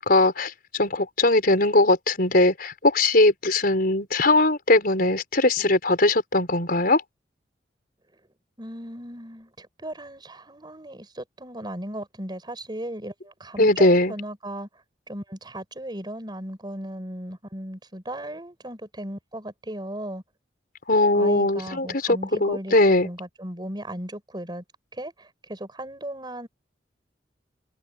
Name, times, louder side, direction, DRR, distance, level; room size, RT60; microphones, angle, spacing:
voice 1, 0.0-7.0 13.6-14.1 20.9-23.1, left 2 dB, 55° left, 4.8 m, -20 dB
voice 2, 8.6-14.7 15.1-20.2 21.1-24.6 24.9-26.5, right 1 dB, 25° right, 6.7 m, -36 dB
head